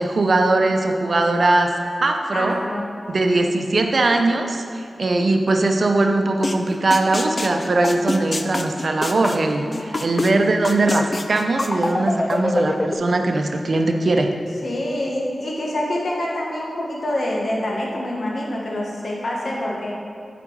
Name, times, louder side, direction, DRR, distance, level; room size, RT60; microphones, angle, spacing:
voice 1, 0.0-1.7 2.0-2.6 3.1-14.3, right 2 dB, 60° right, 4 dB, 0.7 m, -20 dB
voice 2, 2.3-2.9 9.7-10.0 14.6-20.0, left 1 dB, 60° left, -3 dB, 1.4 m, -26 dB
sound 1, 6.4-6.6 6.9-10.3 10.6-13.0, left 2 dB, 40° left, 0.5 m, -24 dB
9.1 x 5.1 x 4.7 m, 2.4 s
wide cardioid pair, 75°, 0 cm